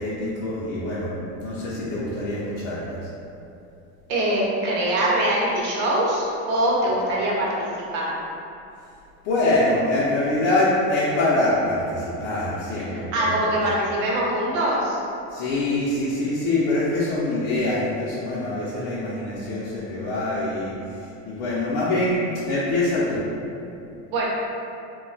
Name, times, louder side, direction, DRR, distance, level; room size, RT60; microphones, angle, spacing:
voice 1, 0.0-3.0 9.2-13.3 15.3-22.2 22.5-23.2, left 2 dB, 60° left, -9 dB, 0.6 m, -24 dB
voice 2, 4.1-8.2 12.9-15.0 24.1-24.3, right 1 dB, 85° right, -4 dB, 0.8 m, -23 dB
2.2 x 2.1 x 3.8 m, 2.7 s
cardioid pair, 165°, 34 cm